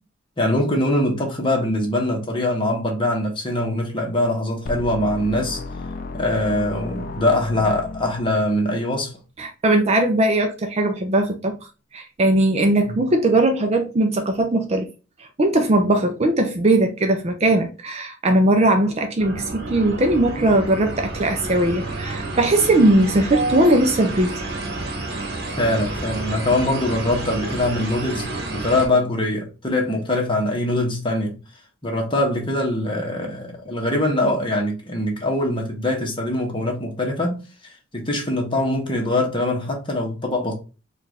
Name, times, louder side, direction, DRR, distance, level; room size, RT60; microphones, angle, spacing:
voice 1, 0.4-5.6 6.1-9.1 12.9-13.0 25.6-31.4 31.8-37.4 37.9-40.5, left 1 dB, 25° left, 1.1 m, -23 dB
sound 1, 4.7-8.7, left 3 dB, 45° left, 0.4 m, -34 dB
voice 2, 9.4-11.6 11.9-14.9 15.4-24.4, right 1 dB, 30° right, 0.4 m, -19 dB
sound 2, 19.2-28.9, right 2 dB, 50° right, 1.1 m, -30 dB
4.6 x 2.4 x 3.3 m
head